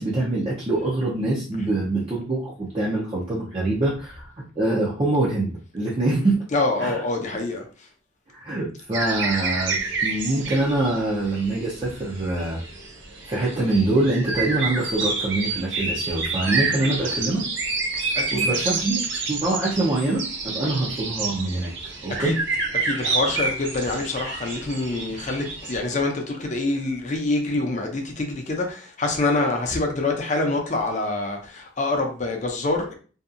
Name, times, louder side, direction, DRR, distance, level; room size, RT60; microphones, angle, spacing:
voice 1, 0.0-6.4 6.8-7.0 8.3-12.6 13.3-17.5 18.3-19.0 19.3-21.7 22.0-22.4, right 2 dB, 30° right, -6 dB, 0.5 m, -24 dB
voice 2, 6.5-7.6 17.9-18.7 22.2-22.4 22.8-33.0, left 2 dB, 40° left, 3 dB, 0.5 m, -26 dB
sound 1, 8.9-25.8, right 4 dB, 70° right, 0.6 m, -28 dB
2.7 x 2.3 x 2.4 m, 0.39 s
head